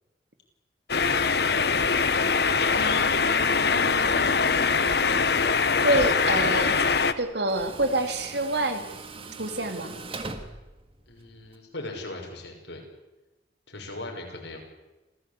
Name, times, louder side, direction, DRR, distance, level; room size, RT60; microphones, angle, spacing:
sound 1, 0.9-7.1, left 5 dB, 60° left, 1.1 m, -23 dB
voice 1, 2.7-5.3 5.8-6.8 7.2-8.8 9.4-9.9, right 1 dB, 65° right, 7 dB, 2.9 m, -28 dB
Tools, 5.3-11.6, right 3 dB, 30° right, 1.8 m, -43 dB
voice 2, 11.1-12.8 13.7-14.6, left 2 dB, 75° left, 2 dB, 6.2 m, -38 dB
27.5 x 16.0 x 8.4 m, 1.1 s
head